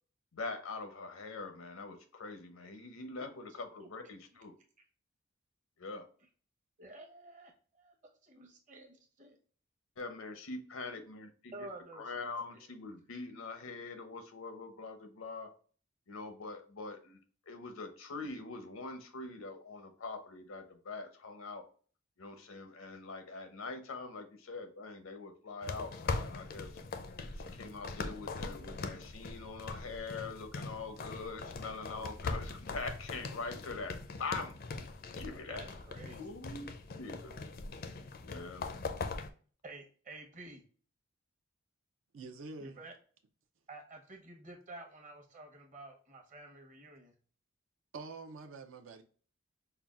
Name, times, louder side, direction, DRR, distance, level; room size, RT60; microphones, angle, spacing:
voice 1, 0.3-4.5 5.8-6.1 10.0-11.7 12.0-15.6 16.1-17.2 17.5-21.7 22.2-26.8 27.3-34.9 35.2-35.6 36.2-36.7 37.0-37.4 38.2-38.8, left 3 dB, 90° left, 0.7 m, -43 dB
voice 2, 6.8-9.4 11.5-12.3 12.5-12.6 35.5-36.3 39.6-40.6 42.6-42.9 43.7-47.1, right 2 dB, 40° right, 0.9 m, -51 dB
sound 1, 25.6-39.3, left 3 dB, 45° left, 0.4 m, -41 dB
voice 3, 42.1-42.8 47.9-49.0, right 3 dB, 70° right, 0.5 m, -46 dB
5.5 x 2.3 x 2.4 m
head